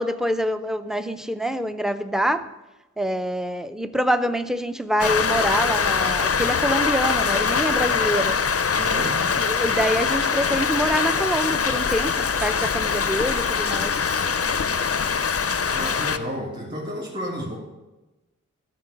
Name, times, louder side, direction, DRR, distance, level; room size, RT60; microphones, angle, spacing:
voice 1, 0.0-2.4 3.0-8.4 9.4-13.9, equal, ahead, 11 dB, 0.6 m, -25 dB
Rain, 5.0-16.2, left 6 dB, 50° left, 0.6 m, -23 dB
voice 2, 8.8-9.2 15.7-17.5, equal, 30° right, -5 dB, 2.5 m, -31 dB
13.0 x 4.5 x 6.9 m, 1.1 s
wide cardioid pair, 50°, 31 cm